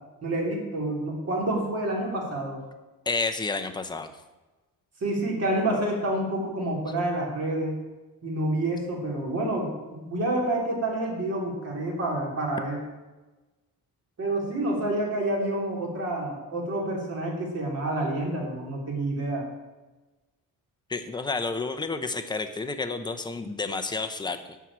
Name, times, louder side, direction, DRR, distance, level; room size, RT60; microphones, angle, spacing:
voice 1, 0.2-2.6 5.0-7.8 8.2-12.8 14.2-19.5, right 1 dB, 45° right, -2 dB, 3.2 m, -28 dB
voice 2, 3.1-4.1 20.9-24.6, left 3 dB, 15° left, 7 dB, 0.7 m, -30 dB
12.0 x 4.7 x 8.6 m, 1.1 s
cardioid pair, 155°, 34 cm